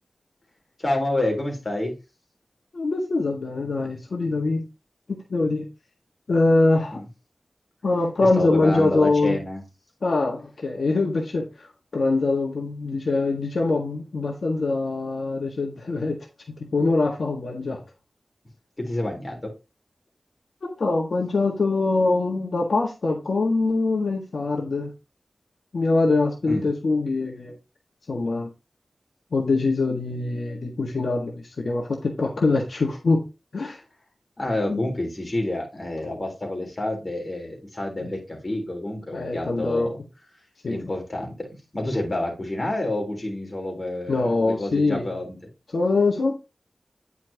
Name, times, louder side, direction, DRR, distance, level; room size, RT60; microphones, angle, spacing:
voice 1, 0.8-1.9 6.9-7.1 8.2-9.6 18.8-19.4 26.5-26.7 34.4-40.0 40.7-45.4, left 1 dB, 35° left, 3.7 m, -28 dB
voice 2, 2.7-4.6 5.1-5.6 6.3-7.0 7.8-9.4 10.0-11.7 11.9-16.2 16.7-17.8 20.6-24.9 25.7-27.5 28.1-28.5 29.3-33.2 33.5-33.8 34.7-34.9 39.1-39.9 40.6-40.8 44.1-45.0 45.7-46.3, left 3 dB, 75° left, 1.5 m, -23 dB
9.6 x 5.7 x 2.9 m
wide cardioid pair, 90°, 0 cm